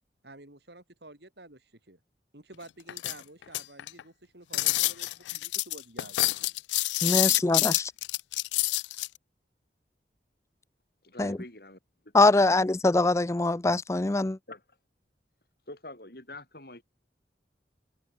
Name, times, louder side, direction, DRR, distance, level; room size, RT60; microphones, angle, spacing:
voice 1, 0.2-2.0 2.3-6.5 7.0-7.4, right 2 dB, 70° right, 3.9 m, -50 dB
sound 1, 2.9-4.0 4.5-9.1, left 19 dB, 85° left, 0.3 m, -27 dB
voice 2, 7.0-7.9 11.2-11.4 12.1-14.4, left 2 dB, 15° left, 0.4 m, -23 dB
voice 3, 11.0-11.8 12.0-12.4 14.5-14.6 15.7-16.8, left 2 dB, 55° left, 5.5 m, -45 dB
head